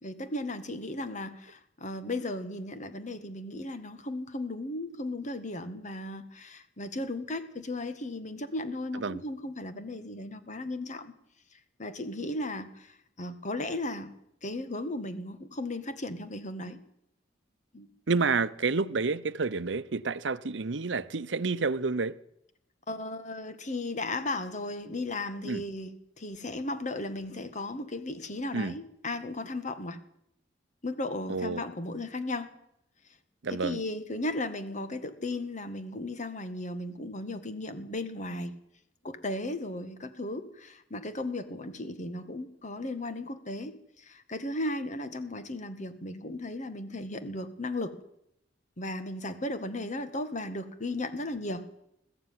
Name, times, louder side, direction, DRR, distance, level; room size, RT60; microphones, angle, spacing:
voice 1, 0.0-11.1 11.5-14.1 14.4-16.8 17.7-17.9 22.9-25.9 26.2-30.0 30.8-32.5 33.5-38.6 39.0-48.0 48.8-51.6, left 2 dB, 40° left, 1.9 m, -36 dB
voice 2, 18.1-22.2 25.4-25.6 28.5-28.8 31.3-31.6 33.4-33.8, right 4 dB, 70° right, 0.8 m, -29 dB
21.0 x 14.5 x 9.7 m
head